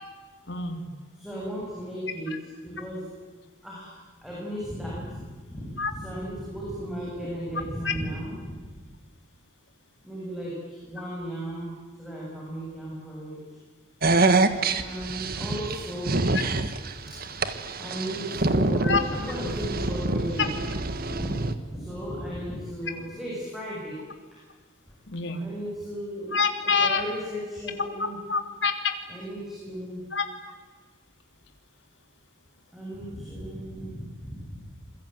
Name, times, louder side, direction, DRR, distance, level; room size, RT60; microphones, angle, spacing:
voice 1, 0.5-0.9 2.3-2.4 5.8-5.9 7.8-7.9 17.6-17.8 18.8-19.0 25.1-25.4 26.3-27.0 28.3-28.9 30.1-30.2, left 5 dB, 60° left, 6 dB, 3.4 m, -26 dB
voice 2, 1.2-2.3 2.6-3.0 3.6-3.9 4.2-5.2 5.5-8.5 8.8-8.9 10.0-11.7 12.0-13.4 14.7-16.2 17.1-17.2 17.8-20.6 21.0-21.4 21.7-24.0 25.4-26.4 26.6-28.2 29.1-30.1 32.7-34.6, equal, ahead, -5 dB, 8.0 m, -35 dB
sound 1, 14.0-21.5, right 3 dB, 50° right, 1.6 m, -26 dB
28.0 x 22.5 x 9.3 m, 1.4 s
head